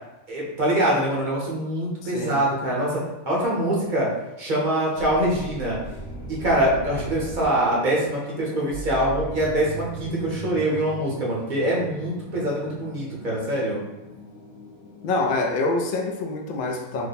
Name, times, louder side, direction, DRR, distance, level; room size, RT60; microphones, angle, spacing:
voice 1, 0.3-4.1 4.4-5.8 6.3-13.8, right 1 dB, 40° right, -5 dB, 0.8 m, -24 dB
voice 2, 2.0-2.4 15.0-17.1, left 3 dB, 80° left, 2 dB, 0.4 m, -26 dB
sound 1, 4.9-15.4, right 2 dB, 55° left, 0.8 m, -38 dB
2.9 x 2.1 x 4.0 m, 0.98 s
omnidirectional pair, 1.5 m